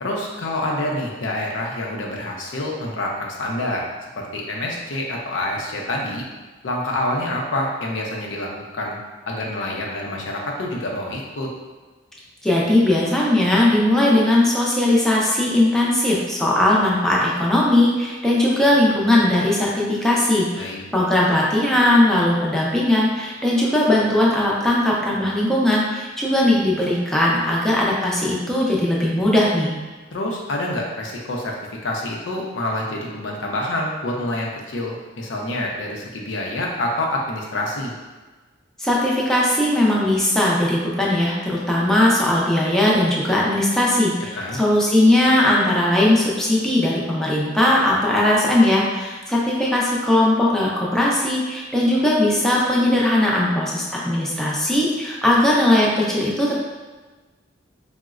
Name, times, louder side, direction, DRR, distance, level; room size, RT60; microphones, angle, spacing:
voice 1, 0.0-3.9 4.1-6.2 6.6-9.0 9.3-11.5 20.5-20.8 30.1-31.5 31.8-37.9 44.3-44.6, left 1 dB, 85° left, -1 dB, 0.5 m, -27 dB
voice 2, 12.4-29.8 38.8-56.6, left 1 dB, 5° left, -5 dB, 0.4 m, -19 dB
3.9 x 2.0 x 2.3 m, 1.3 s
head